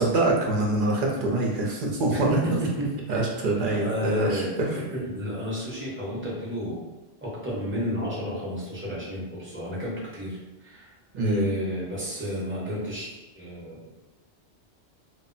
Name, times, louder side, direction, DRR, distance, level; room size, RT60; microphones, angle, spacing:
voice 1, 0.0-2.3 3.1-4.7 11.1-11.5, right 2 dB, 55° right, -2 dB, 0.7 m, -25 dB
voice 2, 2.8-3.2 3.8-4.5 4.9-6.8 7.2-13.8, equal, 15° right, -7 dB, 0.7 m, -31 dB
2.1 x 2.0 x 3.8 m, 1.1 s
omnidirectional pair, 1.1 m